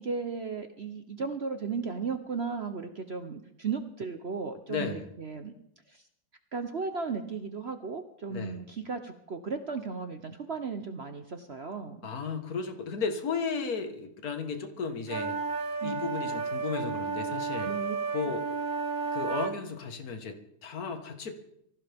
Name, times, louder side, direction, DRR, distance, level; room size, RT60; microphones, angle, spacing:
voice 1, 0.0-5.5 5.9-6.0 6.5-12.0 15.8-16.1 17.6-18.0, right 5 dB, 50° right, 7 dB, 0.7 m, -35 dB
voice 2, 4.7-5.1 8.3-8.6 12.0-15.4 15.8-17.7 18.1-18.4 19.1-21.3, left 5 dB, 50° left, 6 dB, 1.9 m, -34 dB
sound 1, 15.1-19.5, right 4 dB, 75° right, 2.8 m, -32 dB
24.0 x 15.5 x 3.5 m, 0.75 s
omnidirectional pair, 2.1 m